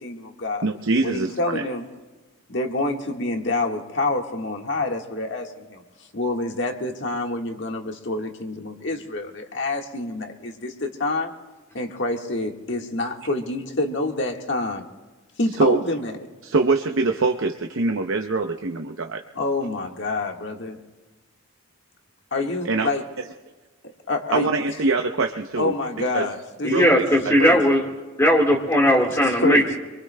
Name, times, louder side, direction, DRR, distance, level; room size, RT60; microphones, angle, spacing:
voice 1, 0.0-0.6 1.0-1.9 2.5-5.8 6.1-11.3 11.7-14.8 15.4-16.1 19.3-20.8 22.3-23.0 23.8-24.5 25.6-26.7 27.0-27.1 27.4-27.6 29.0-29.7, left 2 dB, 60° left, 2 dB, 1.6 m, -27 dB
voice 2, 0.6-1.6 15.6-15.8 16.4-19.2 22.6-22.9 24.3-25.7 26.1-26.3 26.7-27.4, right 3 dB, 70° right, 4 dB, 0.7 m, -23 dB
voice 3, 26.6-27.8 28.2-29.8, equal, 15° left, -2 dB, 1.7 m, -18 dB
27.0 x 23.0 x 2.2 m, 1.3 s
head